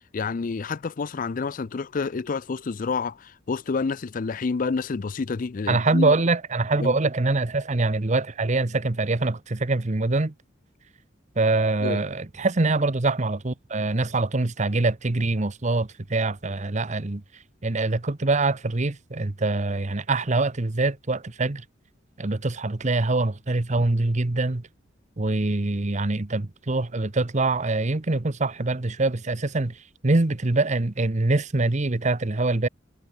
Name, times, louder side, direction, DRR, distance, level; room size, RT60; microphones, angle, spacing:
voice 1, 0.1-6.2 6.8-7.0 11.8-12.0, left 4 dB, 45° left, 0.5 m, -28 dB
voice 2, 5.7-10.3 11.4-17.2 17.6-21.6 22.2-24.7 25.2-32.7, right 2 dB, 40° right, 1.0 m, -24 dB
head